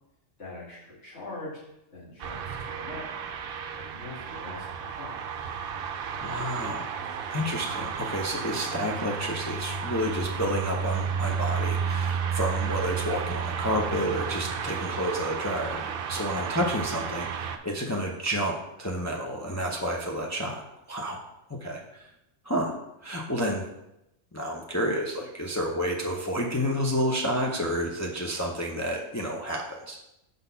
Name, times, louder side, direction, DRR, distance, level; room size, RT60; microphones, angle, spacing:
voice 1, 0.4-1.6 1.9-3.1 3.7-5.2, left 2 dB, 75° left, -7 dB, 2.4 m, -42 dB
sound 1, 2.2-17.6, right 6 dB, 60° right, 0.7 m, -32 dB
voice 2, 6.2-6.9 7.3-20.6 20.9-21.2 21.5-22.1 22.4-22.7 23.0-23.6 24.3-30.0, equal, 20° left, -1 dB, 0.5 m, -30 dB
5.2 x 4.1 x 5.5 m, 0.88 s
omnidirectional pair, 1.2 m